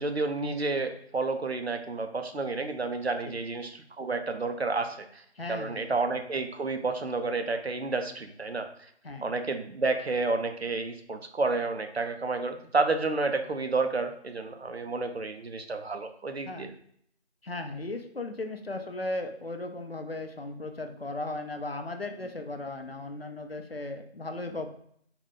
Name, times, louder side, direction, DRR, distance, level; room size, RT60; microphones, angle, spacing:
voice 1, 0.0-5.2 5.5-8.7 9.2-16.7, right 3 dB, 65° right, 7 dB, 0.5 m, -30 dB
voice 2, 5.3-5.9 9.0-9.3 16.5-16.7 17.4-24.7, left 2 dB, 60° left, 6 dB, 0.5 m, -36 dB
3.9 x 2.1 x 3.8 m, 0.65 s
figure-of-eight pair, 180°, 34 cm